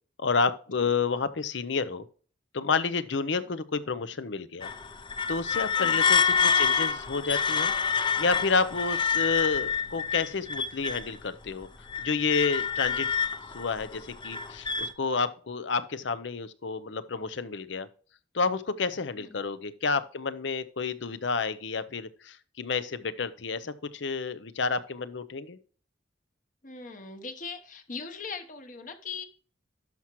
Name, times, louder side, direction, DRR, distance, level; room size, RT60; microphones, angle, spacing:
voice 1, 0.2-2.0 2.5-4.7 5.3-7.7 8.2-11.7 12.0-13.1 13.5-17.9 18.3-25.6, left 4 dB, 75° left, 14 dB, 0.7 m, -30 dB
sound 1, 4.6-11.2 11.6-14.9, left 6 dB, 25° left, 0.5 m, -27 dB
voice 2, 26.6-29.3, left 4 dB, 45° left, 7 dB, 1.0 m, -40 dB
12.0 x 5.9 x 3.1 m, 0.42 s
head